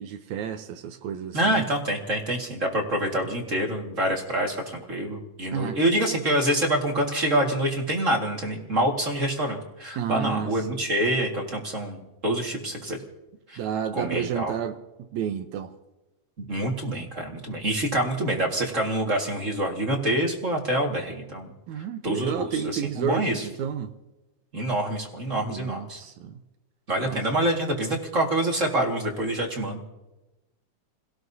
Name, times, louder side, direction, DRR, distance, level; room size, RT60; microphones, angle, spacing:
voice 1, 0.0-1.6 3.2-3.3 5.5-5.8 10.0-10.5 13.6-14.8 15.1-15.7 21.7-23.9 25.4-26.4 27.0-27.2, right 8 dB, 80° right, 2.1 m, -31 dB
voice 2, 1.3-13.0 13.5-13.6 13.9-14.5 16.4-21.5 21.7-23.5 24.5-26.0 26.9-29.8, right 1 dB, 30° right, 1.7 m, -26 dB
29.5 x 17.5 x 2.7 m
omnidirectional pair, 3.3 m